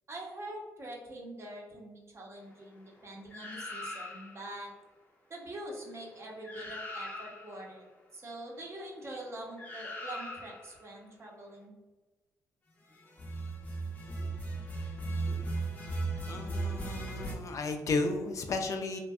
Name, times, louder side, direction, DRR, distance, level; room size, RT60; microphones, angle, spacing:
voice 1, 0.1-4.7 5.3-7.8 8.1-11.7, right 1 dB, 40° right, -1 dB, 0.7 m, -44 dB
sound 1, 3.3-4.5 6.1-6.2 6.4-7.6 9.6-10.7 13.1-17.3, right 2 dB, 20° left, 0.7 m, -37 dB
voice 2, 16.3-19.0, left 3 dB, 50° left, 5 dB, 0.3 m, -33 dB
2.5 x 2.1 x 2.3 m, 1.2 s
supercardioid pair, 65°, 7 cm